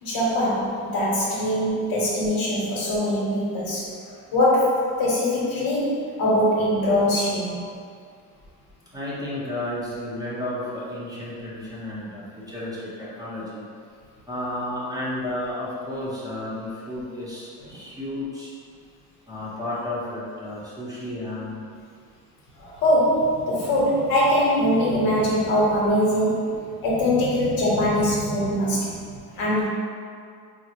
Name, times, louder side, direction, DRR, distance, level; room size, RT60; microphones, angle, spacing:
voice 1, 0.0-3.9 4.3-7.6 22.6-29.7, equal, 75° left, -5 dB, 1.0 m, -22 dB
voice 2, 8.9-13.6 14.3-18.5 19.3-21.6, left 1 dB, 10° right, -9 dB, 0.7 m, -32 dB
3.8 x 2.1 x 2.9 m, 2.2 s
cardioid pair, 125°, 36 cm